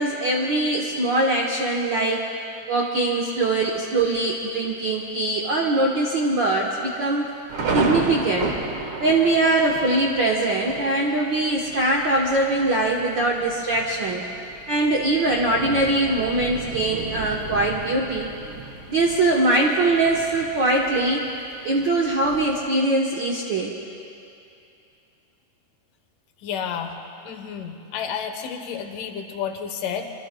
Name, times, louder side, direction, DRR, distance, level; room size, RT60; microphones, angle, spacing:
voice 1, 0.0-2.2 2.7-7.3 7.7-8.5 9.0-14.2 14.7-18.3 18.9-21.2 21.6-23.7, right 2 dB, 85° right, -2 dB, 1.0 m, -22 dB
Thunder, 3.4-3.9 4.4-4.5 4.8-5.3 5.6-5.7 6.4-22.7, right 3 dB, 50° right, 1.9 m, -33 dB
voice 2, 26.4-26.9 27.2-30.1, left 7 dB, 75° left, 5 dB, 2.6 m, -31 dB
25.5 x 25.0 x 2.2 m, 2.6 s
omnidirectional pair, 3.8 m